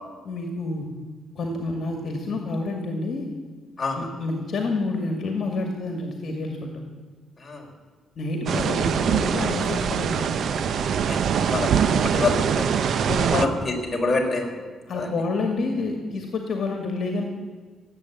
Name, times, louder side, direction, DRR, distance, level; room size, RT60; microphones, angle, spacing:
voice 1, 0.2-0.9 1.4-3.3 4.0-6.8 8.2-10.3 13.1-13.5 14.9-17.2, left 3 dB, 55° left, 3 dB, 2.2 m, -28 dB
sound 1, 8.5-13.5, right 7 dB, 65° right, 0.9 m, -23 dB
voice 2, 11.1-12.8 13.2-13.5 13.9-14.5 15.0-15.1, left 3 dB, 25° left, 0 dB, 4.1 m, -26 dB
18.0 x 8.5 x 8.4 m, 1.5 s
cardioid pair, 90°, 0 cm